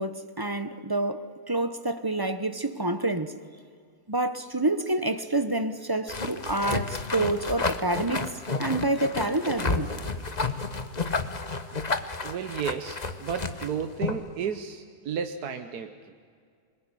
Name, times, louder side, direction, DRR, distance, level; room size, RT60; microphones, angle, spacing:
voice 1, 0.0-3.4 4.1-8.3 8.6-9.9, right 2 dB, 20° right, 0.7 m, -28 dB
sound 1, 6.1-14.3, left 3 dB, 30° left, 1.2 m, -31 dB
voice 2, 12.2-16.0, right 7 dB, 80° right, 1.5 m, -33 dB
27.5 x 21.0 x 9.9 m
omnidirectional pair, 1.6 m